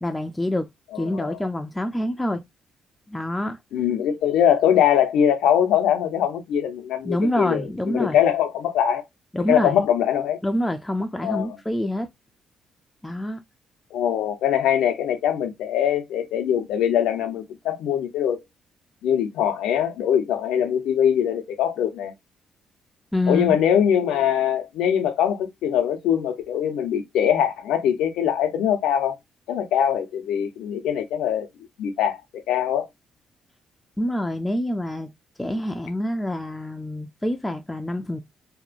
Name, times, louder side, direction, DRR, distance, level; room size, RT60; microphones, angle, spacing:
voice 1, 0.0-0.7 1.0-2.4 3.1-3.6 7.0-8.2 9.3-9.8 10.4-12.1 13.0-13.4 23.1-23.6 34.0-35.1 35.4-38.2, left 1 dB, 10° left, 0.4 m, -26 dB
voice 2, 1.0-1.4 3.7-9.0 9.5-10.4 11.2-11.6 13.9-18.4 19.0-22.1 23.3-29.2 29.5-31.5 31.8-32.9, left 9 dB, 85° left, 0.7 m, -22 dB
2.9 x 2.1 x 2.4 m
cardioid pair, 90°, 0 cm